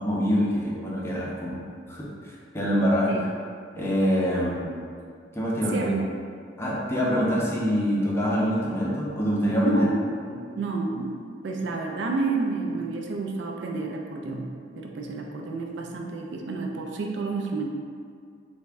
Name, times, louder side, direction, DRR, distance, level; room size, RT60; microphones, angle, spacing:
voice 1, 0.0-1.6 1.9-3.1 3.7-4.7 5.3-5.9 6.6-9.9 10.2-10.4, equal, 15° left, -6 dB, 0.5 m, -25 dB
voice 2, 5.7-6.1 9.7-10.0 10.6-14.5 14.8-17.7, right 3 dB, 65° right, 1 dB, 0.3 m, -30 dB
3.3 x 2.1 x 3.4 m, 2.2 s
head